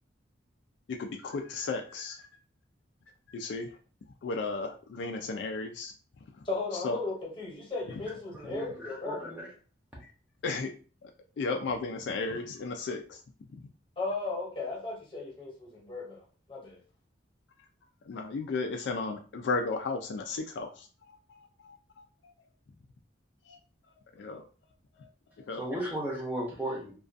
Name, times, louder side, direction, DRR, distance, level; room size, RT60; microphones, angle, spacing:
voice 1, 1.0-2.3 3.3-3.7 4.2-5.9 6.8-7.0 10.4-10.7 11.0-11.1 11.4-13.2 18.1-22.1 23.5-23.6 24.2-24.4 25.5-25.6, left 3 dB, 65° left, 4 dB, 0.3 m, -34 dB
voice 2, 6.4-9.3 14.0-16.8, left 3 dB, 25° left, -3 dB, 0.9 m, -36 dB
voice 3, 8.3-9.4 25.5-26.9, right 1 dB, 10° right, -3 dB, 0.6 m, -35 dB
2.4 x 2.3 x 2.5 m, 0.37 s
head